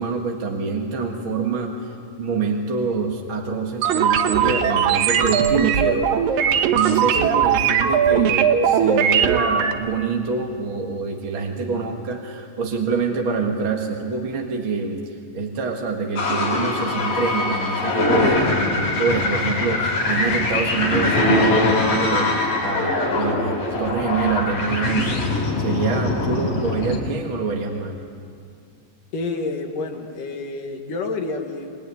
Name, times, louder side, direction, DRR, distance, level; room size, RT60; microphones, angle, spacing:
voice 1, 0.0-1.9 2.2-6.5 6.7-25.3 25.6-28.0, right 4 dB, 45° right, 1 dB, 2.1 m, -26 dB
sound 1, 3.8-9.7, right 8 dB, 85° right, 2.8 m, -19 dB
sound 2, 16.2-27.0, left 2 dB, 85° left, 6.9 m, -22 dB
voice 2, 29.1-31.7, left 3 dB, 70° left, 3 dB, 3.5 m, -28 dB
27.0 x 21.5 x 9.8 m, 2.3 s
omnidirectional pair, 4.0 m